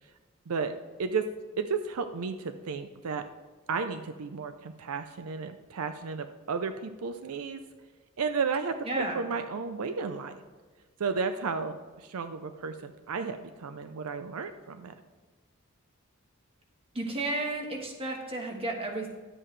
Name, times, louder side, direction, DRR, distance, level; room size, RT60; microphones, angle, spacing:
voice 1, 0.5-1.3 1.6-3.3 3.7-7.6 8.2-10.4 11.0-14.9, right 5 dB, 80° right, 8 dB, 0.5 m, -33 dB
voice 2, 8.9-9.2 16.9-19.1, right 2 dB, 25° right, 1 dB, 1.3 m, -32 dB
11.0 x 7.8 x 3.2 m, 1.4 s
head